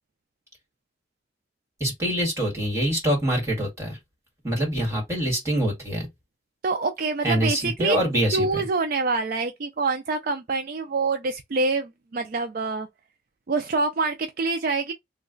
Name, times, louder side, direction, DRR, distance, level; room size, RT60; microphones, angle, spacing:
voice 1, 1.8-4.0 4.4-6.1 7.2-8.6, equal, 15° right, 1.7 m, -25 dB
voice 2, 6.6-8.0 8.3-12.9 13.5-14.9, right 3 dB, 50° right, 0.4 m, -26 dB
3.1 x 2.2 x 3.7 m
head